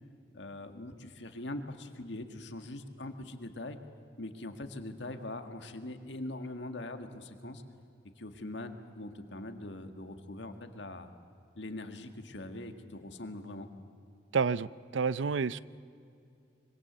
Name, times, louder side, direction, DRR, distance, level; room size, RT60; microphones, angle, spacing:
voice 1, 0.3-3.8 4.2-7.6 8.2-11.1 11.6-13.7, left 1 dB, 70° left, 7 dB, 1.8 m, -42 dB
voice 2, 14.3-15.6, right 5 dB, 80° right, 18 dB, 0.5 m, -29 dB
25.0 x 24.5 x 8.1 m, 2.5 s
head